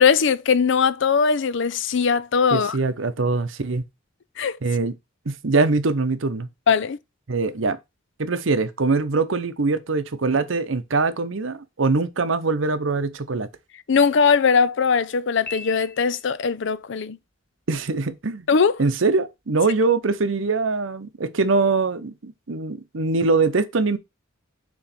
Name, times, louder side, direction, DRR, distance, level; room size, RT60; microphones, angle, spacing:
voice 1, 0.0-2.8 4.4-4.6 6.7-7.0 13.9-17.2 18.5-18.8, left 6 dB, 65° left, 0.5 m, -20 dB
voice 2, 2.5-3.8 4.6-4.9 5.3-6.5 7.3-7.8 8.2-13.5 17.7-18.5 18.8-24.0, right 3 dB, 75° right, 0.8 m, -23 dB
Piano, 15.5-16.6, left 5 dB, 5° left, 1.6 m, -39 dB
7.0 x 3.2 x 5.8 m
head